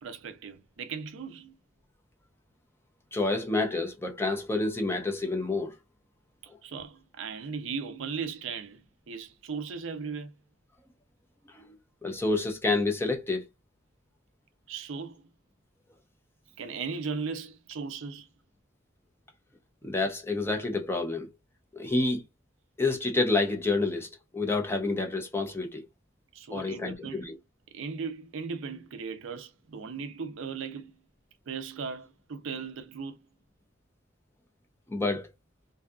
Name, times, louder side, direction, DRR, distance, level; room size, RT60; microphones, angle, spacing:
voice 1, 0.0-1.6 6.4-10.3 14.7-15.3 16.6-18.3 26.3-27.4 27.7-31.0 31.5-33.3, right 5 dB, 70° right, 0.5 m, -37 dB
voice 2, 3.1-5.8 11.5-11.8 12.0-13.4 19.8-21.3 21.7-22.2 22.8-25.9 26.5-27.4 34.9-35.3, left 3 dB, 10° left, 0.6 m, -28 dB
2.6 x 2.4 x 2.2 m
head